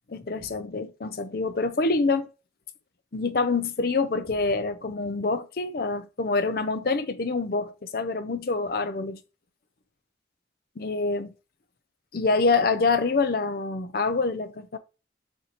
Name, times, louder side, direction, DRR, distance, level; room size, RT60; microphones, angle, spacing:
voice 1, 0.1-2.3 3.1-9.2 10.8-11.3 12.1-14.8, left 3 dB, 55° left, 0.5 m, -26 dB
6.5 x 2.7 x 3.0 m
head